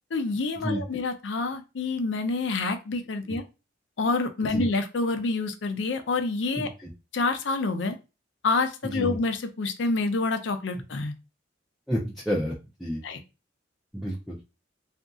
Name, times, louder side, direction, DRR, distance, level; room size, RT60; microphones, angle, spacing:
voice 1, 0.1-3.4 4.0-6.7 7.1-8.0 8.4-11.1 13.0-13.2, left 3 dB, 70° left, 8 dB, 0.5 m, -27 dB
voice 2, 6.5-6.9 8.8-9.2 11.9-12.5 12.8-13.0 13.9-14.4, equal, ahead, -4 dB, 0.4 m, -30 dB
2.8 x 2.5 x 2.3 m, 0.28 s
head